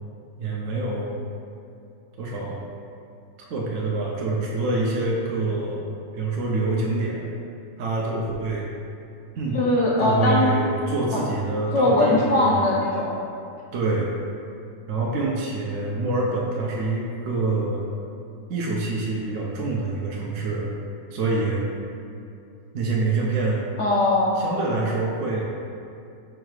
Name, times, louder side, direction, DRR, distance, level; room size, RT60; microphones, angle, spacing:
voice 1, 0.4-1.2 2.2-2.6 3.4-7.3 7.8-8.7 9.4-9.6 10.0-12.7 13.7-14.1 14.9-17.8 18.5-20.7 21.1-21.6 22.7-23.6 24.4-25.4, right 3 dB, 65° right, -3 dB, 0.9 m, -26 dB
voice 2, 9.5-10.5 11.1-11.2 11.7-13.1 23.8-24.4, left 2 dB, 70° left, -4 dB, 0.7 m, -20 dB
4.7 x 2.3 x 4.7 m, 2.6 s
omnidirectional pair, 1.6 m